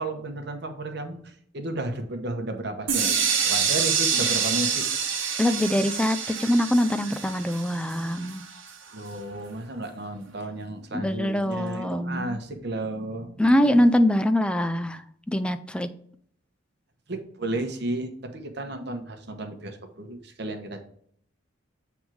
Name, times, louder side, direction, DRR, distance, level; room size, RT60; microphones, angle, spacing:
voice 1, 0.0-4.8 8.9-13.8 17.1-20.8, right 2 dB, 55° right, 5 dB, 1.0 m, -33 dB
sound 1, 2.9-8.7, right 6 dB, 85° right, 1.2 m, -27 dB
voice 2, 5.4-8.4 10.9-12.4 13.4-15.0 15.3-15.9, left 1 dB, 5° left, 11 dB, 0.3 m, -23 dB
7.6 x 3.5 x 4.7 m, 0.64 s
head